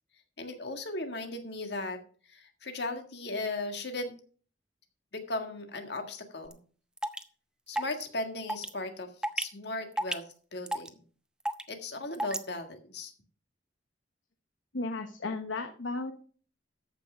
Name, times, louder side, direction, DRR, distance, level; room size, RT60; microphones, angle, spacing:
voice 1, 0.4-2.0 2.3-4.2 5.1-6.6 7.7-9.1 9.4-10.2 10.5-10.9 11.7-13.1, left 2 dB, 60° left, 5 dB, 1.7 m, -37 dB
sound 1, 6.5-6.6 7.0-7.2 7.8-8.0 8.5-8.7 9.2-9.5 10.0-10.3 10.7-10.9 11.5-11.7 12.1-12.4, right 1 dB, 5° right, 0.6 m, -31 dB
voice 2, 14.7-16.1, left 3 dB, 80° left, 6 dB, 1.1 m, -34 dB
14.0 x 5.7 x 4.9 m, 0.42 s
head